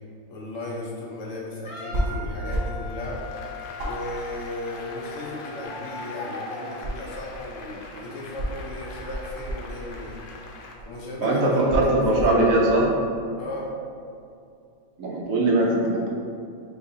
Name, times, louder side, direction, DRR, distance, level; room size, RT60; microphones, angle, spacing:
voice 1, 0.3-3.2 3.8-10.2 10.8-12.0 13.4-13.7, left 2 dB, 65° left, -4 dB, 1.1 m, -36 dB
Wind instrument woodwind instrument, 1.6-6.1, left 3 dB, 25° left, 0.9 m, -40 dB
sound 1, 1.9-2.1 2.5-2.9 3.2-3.3 3.8-5.1 5.4-6.2 6.6-7.6 8.4-10.0 10.8-11.0 11.6-12.4, right 1 dB, 50° right, 1.0 m, -31 dB
Applause, 2.8-10.8, left 3 dB, 80° left, 0.4 m, -41 dB
voice 2, 11.2-12.9 15.0-16.1, right 2 dB, 75° right, -3 dB, 1.1 m, -21 dB
4.6 x 3.2 x 2.7 m, 2.4 s
omnidirectional pair, 1.5 m